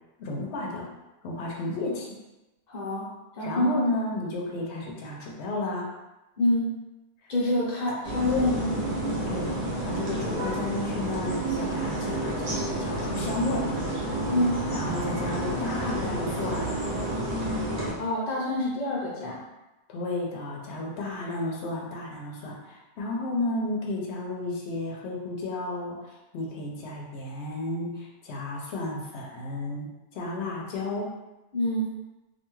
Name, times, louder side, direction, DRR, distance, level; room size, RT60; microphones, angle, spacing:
voice 1, 0.2-0.9 1.2-2.2 3.4-5.9 7.2-7.3 9.3-13.7 14.7-16.8 19.9-31.1, left 2 dB, 90° left, -2 dB, 0.9 m, -33 dB
voice 2, 2.7-3.1 3.3-3.8 6.4-6.7 7.3-8.8 14.3-14.6 18.0-19.4 31.5-31.9, left 1 dB, 45° left, -6 dB, 0.9 m, -26 dB
sound 1, 8.0-17.9, right 1 dB, 55° right, 0.7 m, -30 dB
2.5 x 2.2 x 3.0 m, 1.0 s
omnidirectional pair, 1.1 m